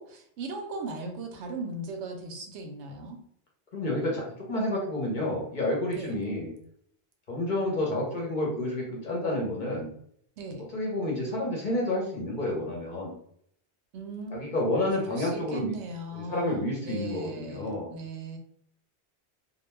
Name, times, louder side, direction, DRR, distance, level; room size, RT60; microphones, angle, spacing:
voice 1, 0.0-3.2 5.9-6.2 10.4-10.7 13.9-14.4 15.0-18.4, right 2 dB, 85° right, 4 dB, 0.9 m, -38 dB
voice 2, 3.7-6.5 7.3-9.9 10.7-13.1 14.3-15.7 16.1-17.9, left 1 dB, 50° left, -2 dB, 0.8 m, -30 dB
2.3 x 2.2 x 3.1 m, 0.67 s
omnidirectional pair, 1.1 m